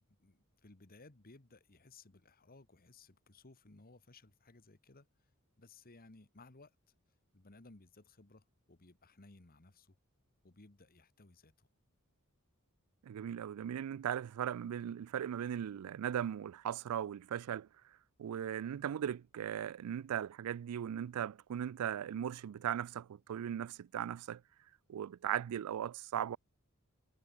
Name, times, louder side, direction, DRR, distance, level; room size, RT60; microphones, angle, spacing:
voice 1, 0.0-5.1 5.6-6.8 7.3-10.0 10.4-11.7, left 3 dB, 45° left, 1.6 m, -60 dB
voice 2, 13.0-17.7 18.2-24.4 24.9-26.4, right 9 dB, 85° right, 0.3 m, -38 dB
head